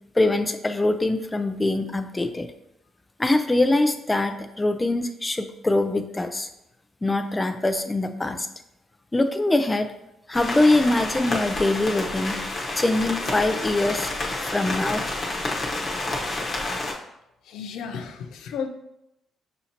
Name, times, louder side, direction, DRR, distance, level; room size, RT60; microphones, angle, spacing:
voice 1, 0.1-2.5 3.2-6.5 7.0-8.5 9.1-9.9 10.3-12.4 12.8-14.1 14.4-15.0, left 2 dB, 15° left, 8 dB, 0.4 m, -23 dB
sound 1, 10.3-16.9, left 2 dB, 45° left, 1.0 m, -29 dB
voice 2, 17.5-18.7, left 6 dB, 80° left, 7 dB, 0.4 m, -33 dB
6.3 x 2.7 x 2.9 m, 0.86 s
cardioid pair, 90°, 0 cm